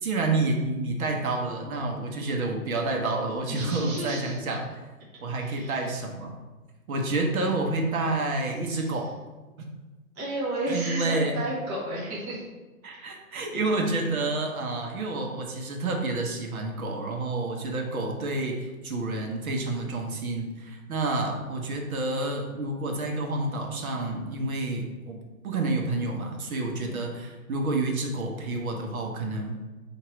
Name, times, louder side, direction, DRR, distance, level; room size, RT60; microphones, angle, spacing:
voice 1, 0.0-4.8 5.2-6.4 6.9-9.1 10.7-11.3 12.8-29.7, right 2 dB, 70° right, 1 dB, 1.1 m, -29 dB
voice 2, 3.5-4.4 5.4-5.9 8.7-9.0 10.1-12.5 26.8-27.1, right 1 dB, 15° right, -7 dB, 0.4 m, -33 dB
5.7 x 2.8 x 3.1 m, 1.2 s
hypercardioid pair, 140°, 44 cm